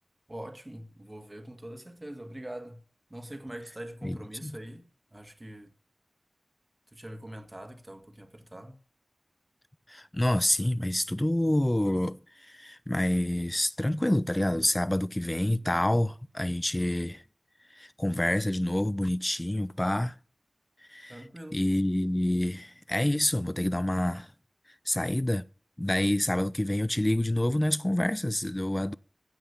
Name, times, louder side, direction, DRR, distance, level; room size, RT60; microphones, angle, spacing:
voice 1, 0.3-2.8 3.1-5.7 6.9-8.8 21.1-21.6, right 1 dB, 25° right, 1.8 m, -43 dB
voice 2, 4.0-4.6 9.9-17.2 17.7-20.2 20.9-21.2 21.5-24.3 24.9-25.4 25.8-28.9, left 1 dB, 20° left, 0.7 m, -27 dB
16.5 x 5.5 x 7.0 m
wide cardioid pair, 50°, 0 cm